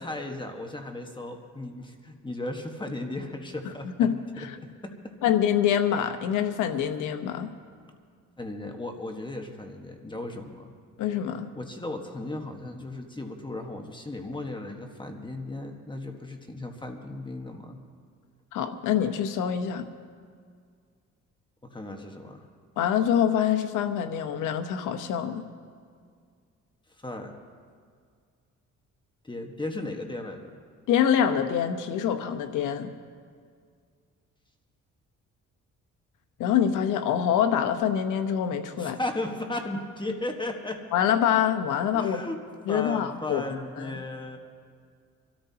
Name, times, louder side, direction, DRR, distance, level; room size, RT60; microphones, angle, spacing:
voice 1, 0.0-4.1 4.4-4.9 8.4-10.7 11.6-17.8 21.7-22.4 27.0-27.3 29.2-30.5 38.8-40.8 41.9-42.4 42.7-44.4, left 2 dB, 15° left, 3 dB, 1.4 m, -36 dB
voice 2, 4.0-4.6 5.2-7.5 11.0-11.5 18.5-19.9 22.8-25.4 30.9-32.9 36.4-39.0 40.9-42.3 42.7-43.4 43.8-44.0, left 9 dB, 90° left, 8 dB, 1.0 m, -25 dB
26.0 x 13.0 x 2.9 m, 2.1 s
cardioid pair, 90°, 30 cm